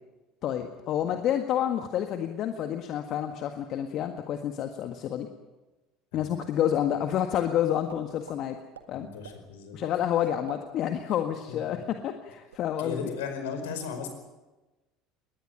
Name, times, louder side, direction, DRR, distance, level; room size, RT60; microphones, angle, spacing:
voice 1, 0.4-5.3 6.1-8.6 8.9-9.1 9.7-13.1, left 10 dB, 50° left, 6 dB, 1.7 m, -29 dB
sound 1, 6.4-6.9 7.3-7.5 7.9-8.4 8.7-8.8 9.2-9.4 9.8-10.0 10.3-11.5 11.8-11.9 12.3-12.7, right 8 dB, 85° right, 1.8 m, -47 dB
voice 2, 8.9-9.8 11.5-11.8 12.8-14.1, left 5 dB, 70° left, 7 dB, 4.9 m, -36 dB
21.5 x 19.5 x 9.1 m, 1.1 s
hypercardioid pair, 70°, 0 cm